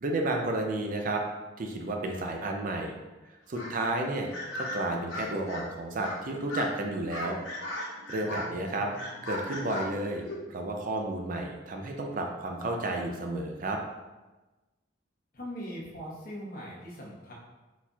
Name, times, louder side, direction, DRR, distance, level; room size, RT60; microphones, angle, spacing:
voice 1, 0.0-1.2 1.6-2.9 3.5-7.4 8.1-8.9 9.2-10.2 10.5-13.8, right 2 dB, 45° right, 2 dB, 0.4 m, -32 dB
sound 1, 3.5-3.8 4.3-5.7 6.0-6.2 6.5-6.7 7.1-8.6 8.9-10.5, left 1 dB, 85° left, 0.8 m, -37 dB
voice 2, 8.3-9.3 15.3-17.3, equal, 45° left, -4 dB, 1.0 m, -42 dB
4.2 x 3.9 x 2.3 m, 1.1 s
head